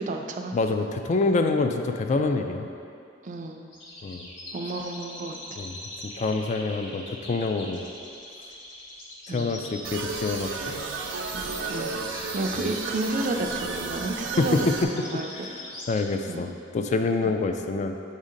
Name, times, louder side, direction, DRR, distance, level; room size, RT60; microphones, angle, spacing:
voice 1, 0.0-0.5 3.2-3.7 4.5-5.6 9.3-9.6 11.3-12.0 12.3-14.6 14.8-15.3 16.3-16.5 17.2-17.3, right 2 dB, 40° right, 3 dB, 0.4 m, -32 dB
voice 2, 0.5-2.7 4.0-4.3 5.6-5.8 6.2-7.8 9.3-10.8 12.6-12.7 14.4-14.6 15.9-18.0, left 3 dB, 40° left, 6 dB, 0.3 m, -26 dB
sound 1, 3.7-16.0, left 1 dB, 80° left, 1.2 m, -42 dB
sound 2, 9.8-14.8, right 4 dB, 90° right, 0.5 m, -33 dB
7.1 x 2.8 x 5.0 m, 2.5 s
head